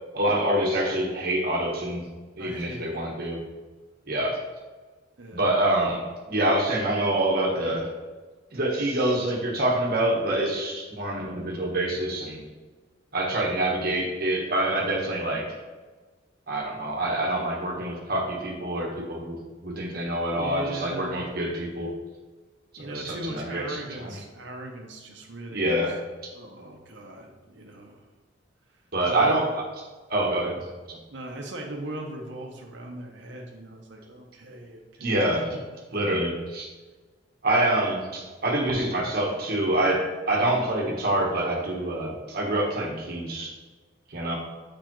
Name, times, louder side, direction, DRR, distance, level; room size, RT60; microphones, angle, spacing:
voice 1, 0.1-2.0 2.4-3.4 4.1-4.4 5.3-7.9 8.5-12.4 13.1-15.6 16.5-21.9 22.7-24.1 25.5-25.9 28.9-29.5 30.1-31.0 35.0-35.4 35.9-36.7 37.4-43.5 44.1-44.3, right 1 dB, 50° right, -1 dB, 1.3 m, -26 dB
voice 2, 2.4-3.1 5.2-5.5 20.4-21.2 22.8-25.8 26.3-28.1 29.1-29.4 31.1-35.2 35.9-36.1, right 1 dB, 65° right, 1 dB, 0.9 m, -39 dB
6.8 x 4.9 x 3.1 m, 1.3 s
head